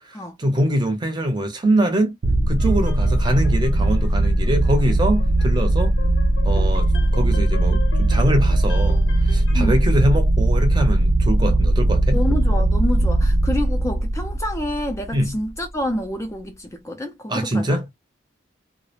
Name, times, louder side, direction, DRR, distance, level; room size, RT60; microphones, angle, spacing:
voice 1, 0.1-2.1 2.5-6.0 6.4-6.9 7.1-9.0 9.3-12.2 15.1-15.3 17.3-17.9, right 1 dB, 25° right, 0.6 m, -23 dB
sound 1, 2.2-15.5, right 1 dB, 70° right, 0.5 m, -19 dB
sound 2, 2.6-9.6, left 3 dB, 70° left, 0.7 m, -40 dB
voice 2, 12.1-17.8, left 1 dB, 15° left, 0.3 m, -28 dB
2.3 x 2.0 x 2.8 m
head